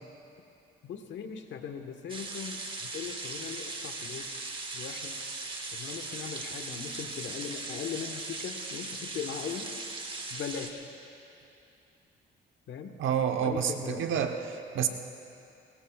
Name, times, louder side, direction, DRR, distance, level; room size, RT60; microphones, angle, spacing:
voice 1, 0.8-4.4 4.7-5.2 5.7-9.7 10.3-10.8 12.7-12.9 13.4-14.3, left 7 dB, 70° left, 5 dB, 1.3 m, -39 dB
sound 1, 2.1-10.7, right 3 dB, 25° right, 1.5 m, -39 dB
voice 2, 13.0-14.9, right 8 dB, 75° right, 5 dB, 1.0 m, -29 dB
23.0 x 20.0 x 2.4 m, 2.7 s
cardioid pair, 90°, 20 cm